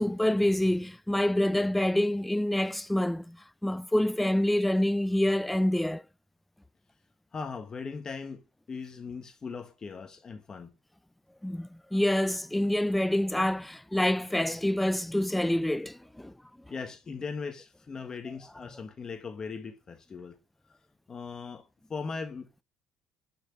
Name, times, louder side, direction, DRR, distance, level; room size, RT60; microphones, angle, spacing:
voice 1, 0.0-3.4 3.6-6.0 11.4-16.3, left 1 dB, 5° left, 0.5 m, -27 dB
voice 2, 7.3-8.4 8.7-10.7 16.7-20.4 21.1-22.6, left 5 dB, 30° left, 1.4 m, -39 dB
12.5 x 6.0 x 6.2 m
cardioid pair, 105°, 2 cm